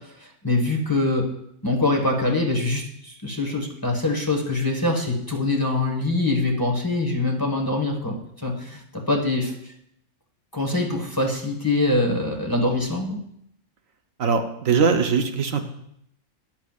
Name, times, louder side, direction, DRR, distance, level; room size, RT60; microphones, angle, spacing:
voice 1, 0.2-1.3 1.6-8.2 8.4-9.5 10.5-13.2, left 2 dB, 15° left, -1 dB, 1.4 m, -24 dB
voice 2, 14.2-15.6, right 5 dB, 75° right, 5 dB, 1.2 m, -21 dB
13.0 x 11.0 x 2.4 m, 0.73 s
omnidirectional pair, 1.4 m